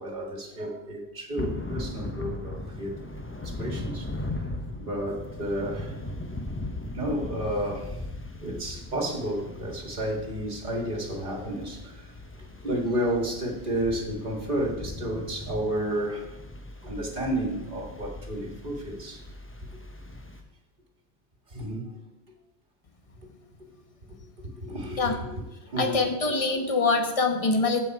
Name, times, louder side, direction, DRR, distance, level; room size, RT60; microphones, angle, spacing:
voice 1, 0.0-2.9 3.4-4.1 4.3-4.4 4.8-6.0 6.2-6.3 6.9-8.1 8.4-12.1 12.4-16.4 16.8-19.2 21.5-21.9 23.2-23.3 24.4-25.4 25.7-26.0, right 1 dB, 50° right, 1.8 m, -31 dB
Thunder / Rain, 1.4-20.4, left 2 dB, 15° left, 0.8 m, -38 dB
voice 2, 25.8-27.8, left 3 dB, 35° left, 1.2 m, -24 dB
15.0 x 5.7 x 4.6 m
omnidirectional pair, 1.1 m